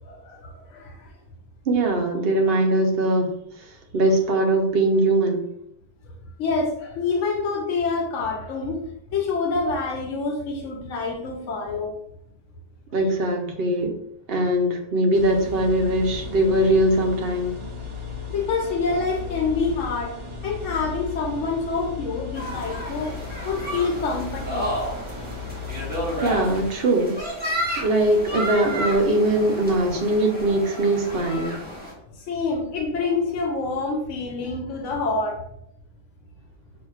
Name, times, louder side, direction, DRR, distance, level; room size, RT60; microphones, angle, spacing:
voice 1, 0.0-1.1 6.4-8.8 9.1-11.9 18.3-20.1 20.4-23.1 23.4-24.7 32.1-35.4, left 4 dB, 90° left, 1 dB, 1.0 m, -27 dB
voice 2, 1.7-3.3 3.9-5.5 12.9-13.9 14.3-17.5 26.2-27.2 27.5-31.6, right 1 dB, 60° right, 2 dB, 0.9 m, -21 dB
sound 1, 15.1-26.7, left 5 dB, 35° right, 0.5 m, -36 dB
sound 2, 22.3-31.9, equal, 10° right, 1.1 m, -31 dB
5.7 x 2.8 x 2.3 m, 0.74 s
omnidirectional pair, 1.2 m